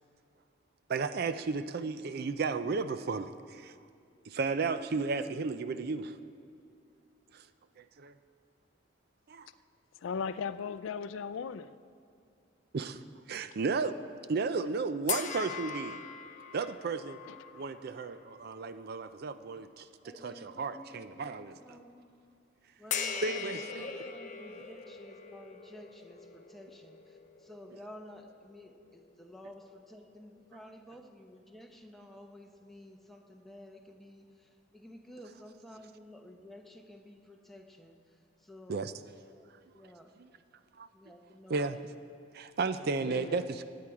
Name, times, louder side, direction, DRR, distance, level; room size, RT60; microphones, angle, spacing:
voice 1, 0.9-3.7 4.2-6.2 7.3-7.4 7.8-8.1 9.3-9.5 12.7-13.0 13.3-14.0 14.3-16.0 16.5-17.2 17.5-21.5 23.2-23.9 38.7-38.9 40.2-40.3 40.8-40.9 41.5-41.8 42.3-43.6, right 4 dB, 50° right, 12 dB, 0.4 m, -34 dB
voice 2, 10.0-11.8 17.3-17.4 42.8-43.5, left 6 dB, 75° left, 14 dB, 0.4 m, -37 dB
sound 1, 15.1-18.6 19.1-19.3 22.9-29.3, left 7 dB, 40° left, 0.6 m, -41 dB
voice 3, 20.0-22.0 22.8-38.0 38.4-38.8 39.3-39.5 39.7-40.1 40.9-41.8, left 1 dB, ahead, 2 dB, 0.9 m, -52 dB
18.0 x 8.6 x 4.8 m, 2.3 s
head